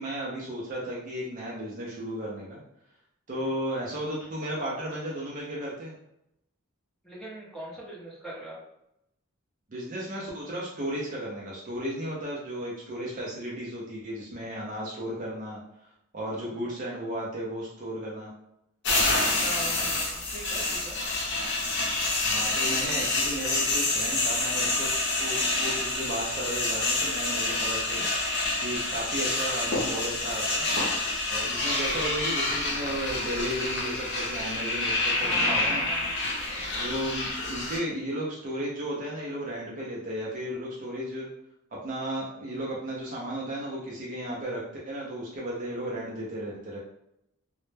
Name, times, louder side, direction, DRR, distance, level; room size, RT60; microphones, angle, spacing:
voice 1, 0.0-2.6 3.3-5.9 9.7-15.6 16.1-18.3 22.2-24.9 25.2-28.1 28.6-30.6 31.3-35.8 36.8-41.3 41.7-46.8, right 1 dB, 35° right, -4 dB, 0.4 m, -34 dB
voice 2, 7.0-8.6 19.4-21.0 35.2-36.2, equal, ahead, -8 dB, 0.7 m, -40 dB
sound 1, 18.8-37.8, left 2 dB, 50° left, 0.6 m, -28 dB
2.1 x 2.0 x 3.1 m, 0.80 s
head